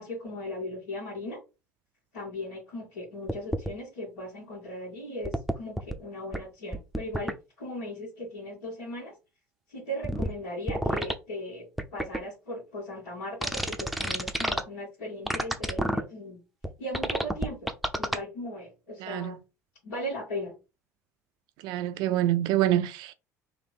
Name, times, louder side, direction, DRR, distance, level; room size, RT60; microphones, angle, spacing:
voice 1, 0.0-1.4 2.1-9.1 9.7-16.4 16.8-17.7 18.0-19.4 19.8-20.5, left 1 dB, 75° left, 2.0 m, -38 dB
sound 1, 3.3-3.7 5.2-5.9 6.3-6.4 6.7-7.3 10.0-10.3 10.7-11.1 11.8-12.2 13.4-14.6 15.3-16.0 16.6-16.7 16.9-18.2, equal, ahead, 0.6 m, -28 dB
voice 2, 19.0-19.3 21.6-23.1, right 13 dB, 55° right, 0.4 m, -26 dB
3.3 x 2.9 x 4.1 m
figure-of-eight pair, 60°, 9 cm